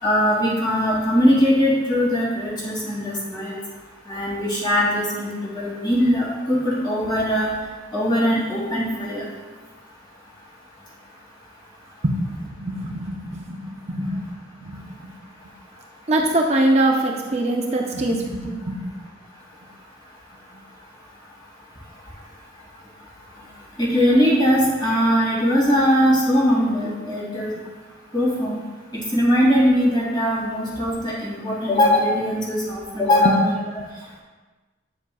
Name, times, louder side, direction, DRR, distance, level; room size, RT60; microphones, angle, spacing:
voice 1, 0.0-3.6 4.1-7.5 7.9-9.3 23.8-27.5 28.1-28.6 28.9-33.5, equal, 25° left, -5 dB, 2.4 m, -20 dB
voice 2, 12.0-14.2 14.6-15.1 16.1-18.8 27.1-27.2 33.2-33.3 33.8-33.9, right 1 dB, 35° right, 0 dB, 0.6 m, -23 dB
8.8 x 7.3 x 2.3 m, 1.3 s
head